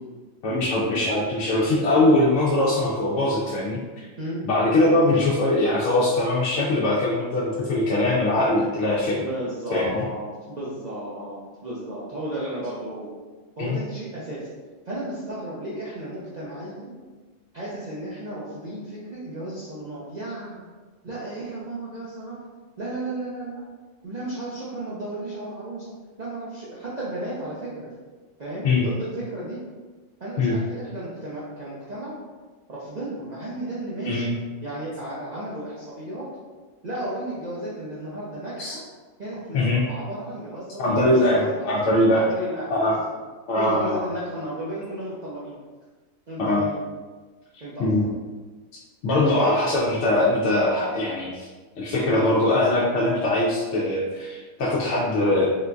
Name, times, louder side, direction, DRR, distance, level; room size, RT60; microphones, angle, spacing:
voice 1, 0.4-4.1 4.4-9.2 9.7-10.0 13.6-13.8 28.6-28.8 30.4-30.6 34.0-34.3 38.6-38.8 39.5-39.8 40.8-42.2 42.7-43.0 43.5-44.0 46.4-46.6 47.8-48.1 49.0-51.5 51.8-55.6, left 1 dB, 70° left, -6 dB, 0.8 m, -22 dB
voice 2, 4.2-4.5 9.2-13.1 13.6-14.5 14.9-16.9 17.5-20.6 21.0-22.4 22.8-23.6 24.0-27.9 28.4-29.6 30.2-32.2 32.7-34.3 34.6-36.3 36.8-38.8 39.2-43.0 43.6-45.6 46.3-46.8 47.6-48.0 49.2-49.3, right 1 dB, 60° right, -8 dB, 0.4 m, -34 dB
3.7 x 2.5 x 2.2 m, 1.3 s
omnidirectional pair, 1.4 m